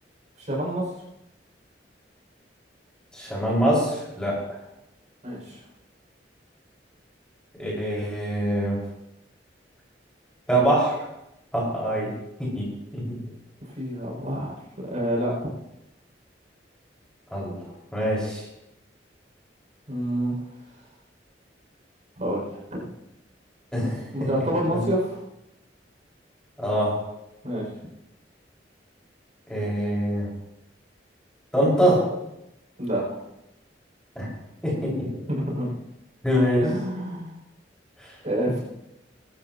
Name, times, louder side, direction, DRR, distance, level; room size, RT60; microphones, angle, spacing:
voice 1, 0.4-0.9 5.2-5.6 13.6-15.5 19.9-20.3 22.2-23.0 24.1-25.2 27.4-27.7 32.8-33.2 35.3-35.7 36.6-37.4 38.2-38.6, right 1 dB, 40° right, -3 dB, 7.0 m, -28 dB
voice 2, 3.1-4.4 7.6-8.8 10.5-11.0 11.5-12.1 12.4-13.2 17.3-17.6 17.9-18.4 23.7-24.3 24.7-24.8 26.6-27.0 29.5-30.3 31.5-32.1 34.2-34.3 34.6-35.1 36.2-36.7 38.0-38.1, right 1 dB, 5° left, -6 dB, 5.9 m, -24 dB
25.0 x 13.0 x 3.1 m, 0.88 s
head